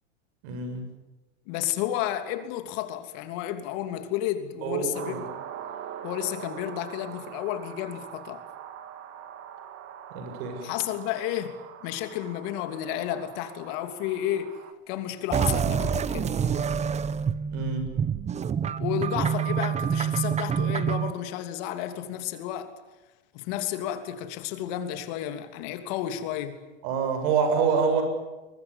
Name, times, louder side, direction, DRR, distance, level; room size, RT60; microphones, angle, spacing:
voice 1, 0.4-0.8 4.6-5.2 10.1-10.6 17.5-17.8 26.8-28.0, right 6 dB, 55° right, 7 dB, 7.7 m, -26 dB
voice 2, 1.5-5.3 6.0-8.4 10.6-11.6 11.8-14.6 14.9-16.4 18.8-22.7 23.3-26.6, left 11 dB, 55° left, 8 dB, 3.0 m, -32 dB
sound 1, 4.9-14.7, right 9 dB, 40° right, 2.8 m, -43 dB
sound 2, 15.3-21.1, right 7 dB, 20° right, 0.9 m, -27 dB
23.0 x 22.5 x 9.9 m, 1.1 s
hypercardioid pair, 115°, 35 cm